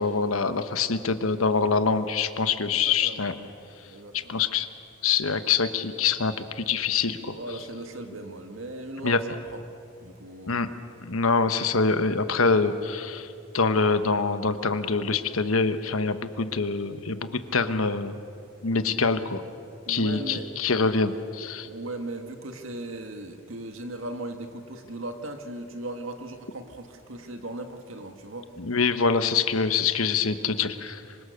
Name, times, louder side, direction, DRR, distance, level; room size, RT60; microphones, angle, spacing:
voice 1, 0.0-3.4 4.1-4.7 5.0-7.4 9.0-9.2 10.5-10.7 11.0-18.1 18.6-19.4 19.9-21.7 28.6-31.0, left 4 dB, 90° left, 10 dB, 1.2 m, -25 dB
voice 2, 2.7-3.2 3.9-4.3 7.3-9.6 10.0-10.6 19.9-20.5 21.6-28.5, right 2 dB, 75° right, 6 dB, 1.9 m, -38 dB
25.5 x 24.5 x 6.6 m, 2.6 s
head